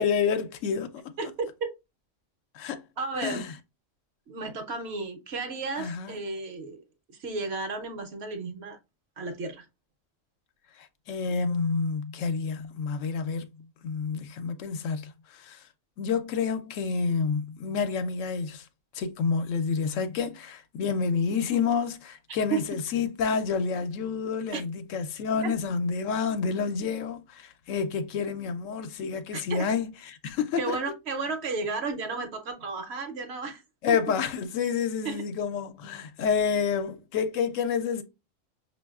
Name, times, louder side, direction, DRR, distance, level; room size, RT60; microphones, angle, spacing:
voice 1, 0.0-1.1 2.5-2.8 3.2-3.5 5.8-6.1 11.1-13.5 13.8-15.6 16.0-18.6 18.9-29.9 30.2-30.8 33.8-38.0, left 6 dB, 80° left, 0.9 m, -29 dB
voice 2, 1.2-1.7 3.0-3.5 4.3-6.8 7.1-8.8 9.2-9.7 22.5-22.6 24.5-24.6 25.4-25.5 29.3-29.7 30.6-33.6 33.9-34.0 35.0-35.2, right 4 dB, 60° right, 0.9 m, -33 dB
5.3 x 2.4 x 2.3 m
omnidirectional pair, 1.3 m